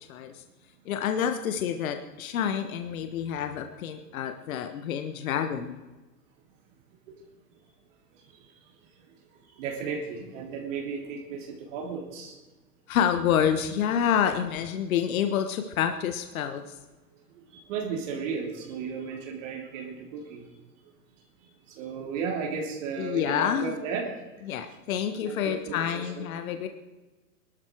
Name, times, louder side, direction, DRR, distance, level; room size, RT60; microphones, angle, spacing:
voice 1, 0.1-0.4 0.8-5.8 12.9-16.7 23.0-23.7 24.5-26.7, left 9 dB, 60° left, 7 dB, 1.4 m, -28 dB
voice 2, 9.5-12.4 17.3-20.5 21.7-24.1 25.3-26.2, right 5 dB, 50° right, 0 dB, 3.6 m, -34 dB
22.5 x 12.5 x 4.7 m, 1.2 s
hypercardioid pair, 110°, 47 cm